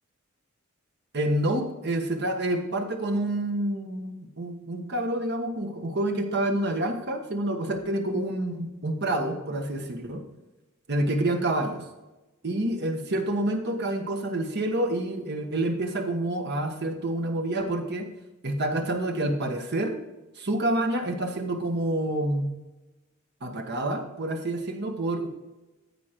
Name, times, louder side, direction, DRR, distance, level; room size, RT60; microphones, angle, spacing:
voice 1, 1.1-10.3 10.9-11.8 12.4-18.1 18.4-19.9 20.4-22.5 23.4-25.3, right 1 dB, 50° right, 4 dB, 1.3 m, -28 dB
13.5 x 5.1 x 4.5 m, 1.1 s
head